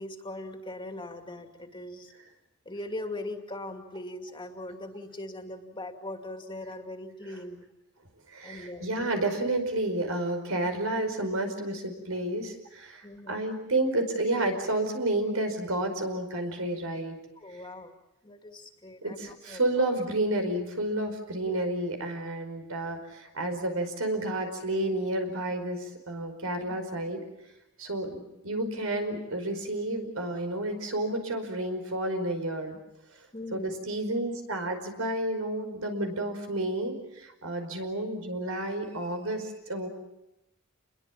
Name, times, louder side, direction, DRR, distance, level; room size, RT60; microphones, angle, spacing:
voice 1, 0.0-2.1 2.6-7.6 8.4-9.0 13.0-13.4 17.4-18.0 18.2-19.6 21.4-21.6 26.7-26.8 33.3-33.7, left 1 dB, 25° left, 5 dB, 2.5 m, -40 dB
voice 2, 8.3-17.2 17.5-17.6 19.0-27.2 27.8-32.8 33.5-39.9, right 1 dB, 85° right, 6 dB, 5.1 m, -31 dB
29.0 x 22.0 x 7.3 m, 0.90 s
head